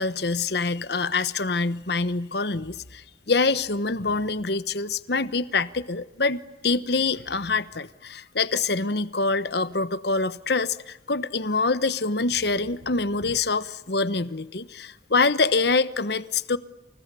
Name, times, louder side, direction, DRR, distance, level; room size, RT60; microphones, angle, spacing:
voice 1, 0.0-16.6, left 3 dB, 60° left, 1.1 m, -25 dB
29.5 x 29.5 x 6.9 m
head